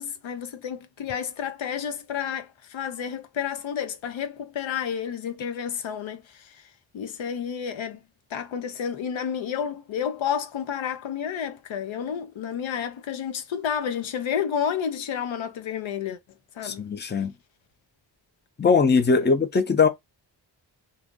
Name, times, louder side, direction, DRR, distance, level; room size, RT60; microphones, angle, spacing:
voice 1, 0.0-6.6 6.9-8.0 8.3-16.2 16.6-16.8 19.1-19.4, left 8 dB, 85° left, 0.7 m, -30 dB
voice 2, 16.6-17.3 18.6-19.9, left 5 dB, 25° left, 0.6 m, -20 dB
2.7 x 2.5 x 3.6 m
wide cardioid pair, 85°, 45 cm